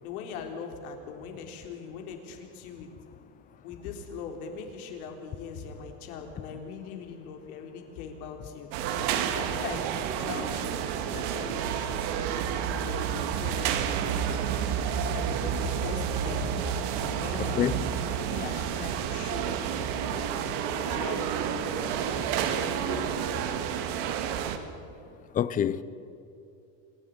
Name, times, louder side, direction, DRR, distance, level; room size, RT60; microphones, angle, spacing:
voice 1, 0.0-2.9 3.6-8.7 9.3-14.4 14.9-16.5 16.9-17.7 18.3-19.6 20.1-23.7, left 5 dB, 75° left, 3.8 m, -41 dB
sound 1, 8.7-24.6, right 8 dB, 60° right, 2.0 m, -30 dB
voice 2, 25.3-25.8, left 9 dB, 20° left, 0.5 m, -26 dB
26.0 x 11.5 x 9.5 m
supercardioid pair, 150°, 44 cm